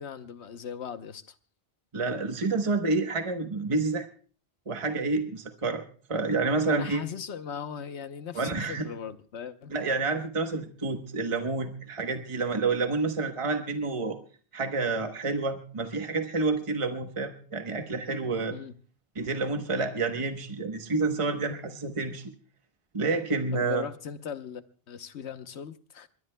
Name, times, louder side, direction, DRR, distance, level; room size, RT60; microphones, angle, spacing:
voice 1, 0.0-1.3 6.6-9.7 18.5-18.8 23.5-26.1, left 7 dB, 85° left, 1.2 m, -39 dB
voice 2, 1.9-4.1 4.7-7.0 8.3-8.9 9.7-14.2 14.5-18.6 19.1-22.2 22.9-23.9, right 3 dB, 30° right, 1.1 m, -29 dB
22.0 x 21.5 x 2.2 m
omnidirectional pair, 1.1 m